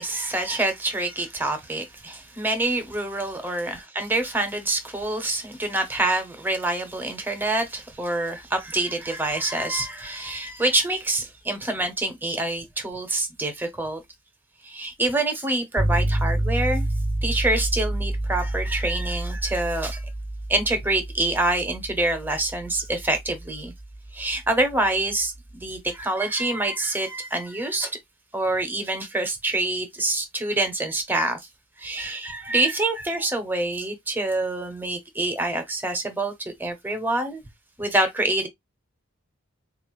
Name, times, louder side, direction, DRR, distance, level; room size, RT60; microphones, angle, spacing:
voice 1, 0.0-14.0 14.6-16.9 17.2-20.1 20.5-23.7 24.1-28.0 28.3-31.4 31.8-37.4 37.8-38.5, right 2 dB, 10° right, 0.7 m, -26 dB
sound 1, 15.8-25.6, right 1 dB, 65° left, 1.3 m, -29 dB
4.0 x 2.4 x 3.0 m
head